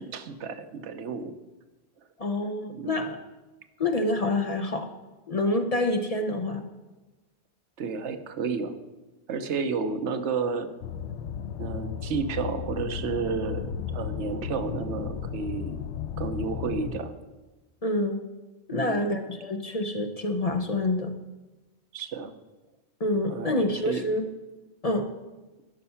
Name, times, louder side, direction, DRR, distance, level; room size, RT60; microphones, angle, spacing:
voice 1, 0.0-1.3 2.7-3.1 7.8-8.7 9.3-10.7 11.6-15.8 16.2-17.1 18.7-19.1 21.9-22.3 23.3-24.0, right 5 dB, 80° right, 9 dB, 1.1 m, -31 dB
voice 2, 2.2-3.2 3.8-4.9 5.3-6.7 17.8-18.2 18.7-21.1 23.0-24.2 24.8-25.1, left 1 dB, 40° left, 6 dB, 0.7 m, -27 dB
sound 1, 10.8-17.0, left 8 dB, 80° left, 0.9 m, -34 dB
12.0 x 5.5 x 5.6 m, 1.1 s
omnidirectional pair, 1.2 m